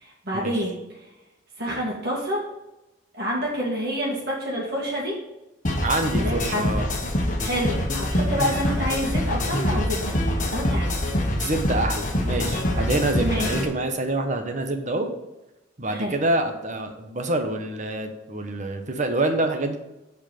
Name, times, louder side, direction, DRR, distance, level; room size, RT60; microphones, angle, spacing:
voice 1, 0.0-0.8 1.6-2.4 3.1-5.1 6.2-6.6 7.4-10.2 10.5-11.0 13.2-13.5 15.9-16.1, equal, 55° right, -4 dB, 2.4 m, -28 dB
sound 1, 5.6-13.6, left 1 dB, 40° left, 1.5 m, -25 dB
voice 2, 5.8-6.9 11.4-15.1 15.8-19.8, right 2 dB, 40° right, 6 dB, 1.1 m, -26 dB
7.8 x 4.8 x 5.8 m, 0.96 s
head